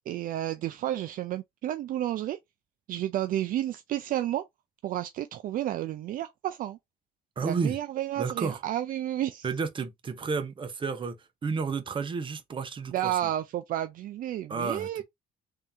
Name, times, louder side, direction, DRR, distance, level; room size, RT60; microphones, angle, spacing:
voice 1, 0.1-2.4 2.9-4.4 4.8-6.8 7.4-9.5 12.9-15.0, right 12 dB, 55° right, 0.4 m, -31 dB
voice 2, 7.4-7.8 8.2-8.6 9.4-11.2 11.4-13.2 14.5-15.0, right 5 dB, 30° right, 0.8 m, -31 dB
3.6 x 2.8 x 3.4 m
cardioid pair, 110°, 17 cm